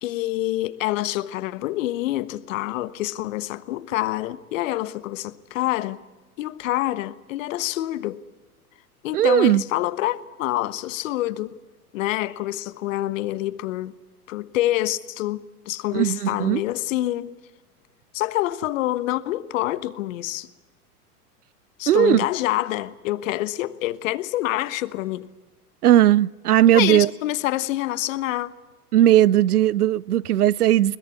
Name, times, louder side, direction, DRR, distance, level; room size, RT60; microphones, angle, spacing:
voice 1, 0.0-6.0 6.4-8.2 9.0-11.6 11.9-13.9 14.3-17.3 18.1-20.5 21.8-25.3 26.7-28.5, left 15 dB, 55° left, 1.3 m, -26 dB
voice 2, 9.1-9.6 15.9-16.6 21.9-22.2 25.8-27.1 28.9-31.0, right 12 dB, 80° right, 0.7 m, -17 dB
21.5 x 20.5 x 8.3 m
hypercardioid pair, 100°, 46 cm